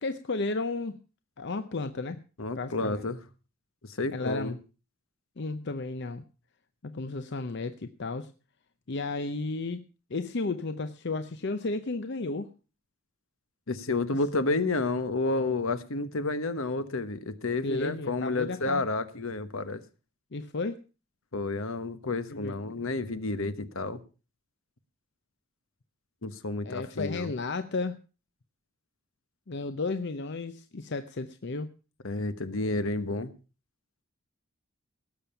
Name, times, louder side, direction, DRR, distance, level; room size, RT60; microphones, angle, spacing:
voice 1, 0.0-1.0 1.4-2.2 2.5-3.1 4.1-4.6 5.4-6.2 6.8-8.3 8.9-9.8 10.1-12.5 17.6-18.8 20.3-20.8 22.3-22.8 26.6-28.0 29.5-31.7, left 3 dB, 55° left, 10 dB, 0.7 m, -33 dB
voice 2, 2.4-3.2 4.0-4.5 13.7-19.8 21.3-24.0 26.2-27.3 32.0-33.3, left 2 dB, 70° left, 12 dB, 1.2 m, -30 dB
18.0 x 7.1 x 5.7 m, 0.35 s
head